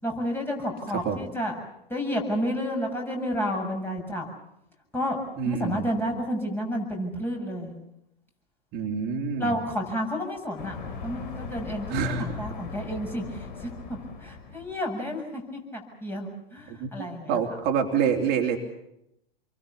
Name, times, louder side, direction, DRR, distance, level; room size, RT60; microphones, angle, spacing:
voice 1, 0.0-1.5 1.9-4.3 4.9-5.2 5.4-7.7 9.4-10.8 11.0-17.4, equal, 5° left, 1 dB, 7.3 m, -31 dB
voice 2, 0.9-1.3 5.4-5.8 8.7-9.6 11.9-12.3 16.7-18.6, right 6 dB, 35° right, 3 dB, 3.5 m, -27 dB
sound 1, 10.6-14.8, left 4 dB, 55° left, 5.1 m, -39 dB
28.5 x 23.5 x 7.0 m, 0.84 s
figure-of-eight pair, 105°, 30 cm